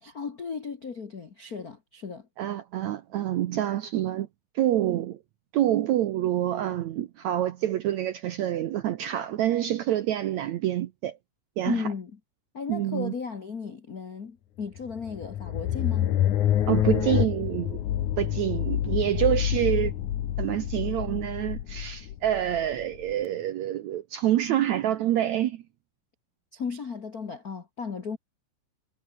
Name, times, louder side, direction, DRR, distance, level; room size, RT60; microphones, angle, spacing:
voice 1, 0.0-2.3 11.6-12.1 12.5-16.1 26.5-28.2, left 5 dB, 85° left, 0.8 m, -35 dB
voice 2, 2.4-4.3 4.6-5.2 5.5-11.2 11.6-11.9 12.7-13.1 16.7-17.8 18.2-19.9 20.4-25.6, right 12 dB, 75° right, 1.7 m, -27 dB
sound 1, 14.8-23.1, left 11 dB, 60° left, 2.5 m, -27 dB
omnidirectional pair, 4.4 m